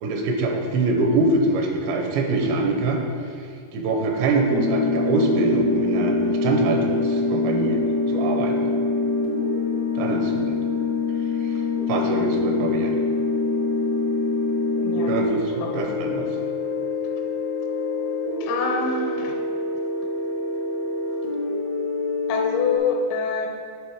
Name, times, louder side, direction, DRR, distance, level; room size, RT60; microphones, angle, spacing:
voice 1, 0.0-3.0 3.7-7.8 8.1-8.7 10.0-10.5 11.4-11.5 11.9-13.0 15.0-16.3, right 2 dB, 85° right, 2 dB, 3.1 m, -24 dB
sound 1, 4.5-22.8, left 3 dB, 65° left, 0.8 m, -25 dB
voice 2, 14.7-15.9 18.4-19.4 22.3-23.5, left 4 dB, 80° left, 3 dB, 3.0 m, -26 dB
10.5 x 5.3 x 4.7 m, 2.2 s
omnidirectional pair, 5.1 m